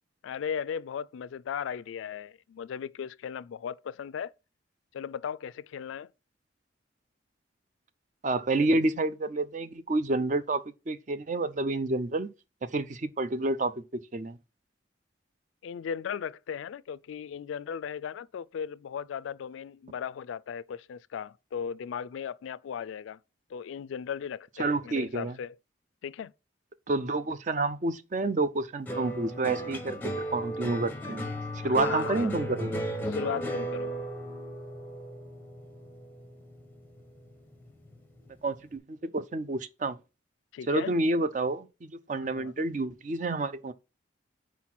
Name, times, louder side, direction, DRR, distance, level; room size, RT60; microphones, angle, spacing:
voice 1, 0.2-4.3 4.9-6.1 15.6-23.2 23.5-25.6 26.0-26.3 31.6-32.3 33.1-33.9 40.5-40.9 42.2-42.5, left 7 dB, 85° left, 0.3 m, -37 dB
voice 2, 8.2-12.3 12.6-14.4 24.6-25.4 26.9-30.0 30.3-32.8 38.4-40.0 40.7-43.7, right 2 dB, 40° right, 0.5 m, -29 dB
sound 1, 28.9-37.3 37.6-38.3, right 1 dB, 10° left, 0.7 m, -35 dB
4.6 x 4.2 x 5.9 m
head